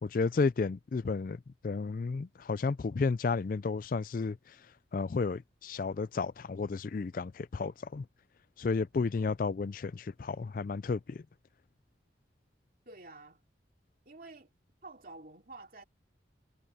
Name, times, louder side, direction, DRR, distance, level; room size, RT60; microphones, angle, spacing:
voice 1, 0.0-4.6 4.9-8.1 8.6-11.2, left 4 dB, 45° left, 0.4 m, -32 dB
voice 2, 12.9-13.4 14.0-14.5 14.8-15.8, right 2 dB, 50° right, 2.8 m, -49 dB
head